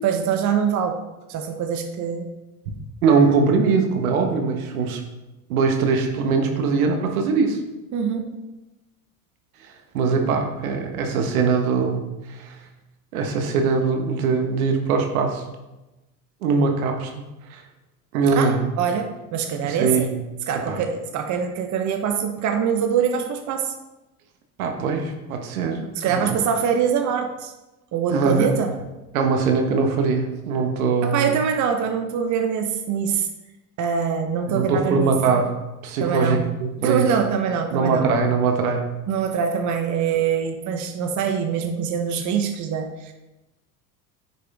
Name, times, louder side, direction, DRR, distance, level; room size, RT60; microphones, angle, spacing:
voice 1, 0.0-1.0 1.3-2.3 7.9-8.3 18.3-20.1 20.5-23.7 25.9-27.5 27.9-28.7 31.0-33.3 33.8-35.1 36.0-36.4 36.8-38.1 39.1-43.1, right 7 dB, 40° right, 5 dB, 1.0 m, -24 dB
voice 2, 3.0-5.0 5.5-7.6 9.9-12.0 12.3-12.5 13.1-15.4 16.4-17.1 17.5-17.6 18.1-18.6 19.6-20.1 20.7-20.8 24.6-26.4 28.1-28.5 29.1-31.3 34.5-35.5 35.8-37.1 37.7-38.8, right 5 dB, 75° right, 3 dB, 1.5 m, -21 dB
9.8 x 6.4 x 3.6 m, 1.0 s
hypercardioid pair, 75°, 43 cm